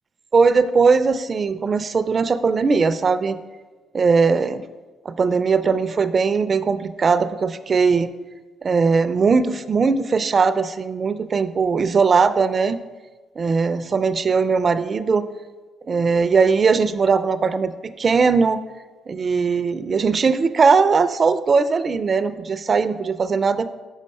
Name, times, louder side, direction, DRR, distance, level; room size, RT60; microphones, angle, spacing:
voice 1, 0.3-3.4 3.9-4.6 5.1-8.1 8.6-12.8 13.4-15.2 15.9-17.7 18.0-18.6 19.1-23.7, right 5 dB, 40° right, 13 dB, 0.4 m, -19 dB
6.4 x 4.9 x 5.4 m, 1.3 s
cardioid pair, 90°, 0 cm